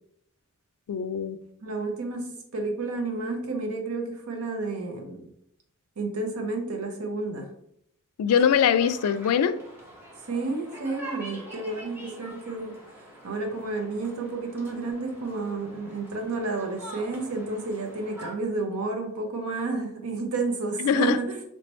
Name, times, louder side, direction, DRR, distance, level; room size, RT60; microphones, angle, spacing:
voice 1, 0.9-1.4 8.2-9.5 20.8-21.2, left 8 dB, 90° left, 13 dB, 0.3 m, -22 dB
voice 2, 1.6-5.3 6.0-7.5 10.3-12.8 13.2-21.4, right 3 dB, 75° right, 3 dB, 0.7 m, -31 dB
sound 1, 8.3-18.3, right 1 dB, 10° right, 0.9 m, -45 dB
3.2 x 3.0 x 3.1 m, 0.73 s
head